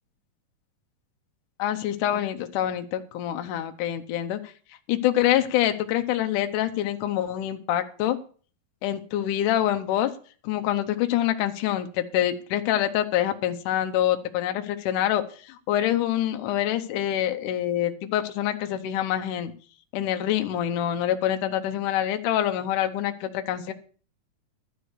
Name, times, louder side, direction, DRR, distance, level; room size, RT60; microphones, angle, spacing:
voice 1, 1.6-4.5 4.9-8.2 8.8-10.1 10.4-19.5 19.9-23.7, left 12 dB, 75° left, 7 dB, 2.0 m, -26 dB
12.0 x 4.9 x 8.0 m, 0.41 s
omnidirectional pair, 4.5 m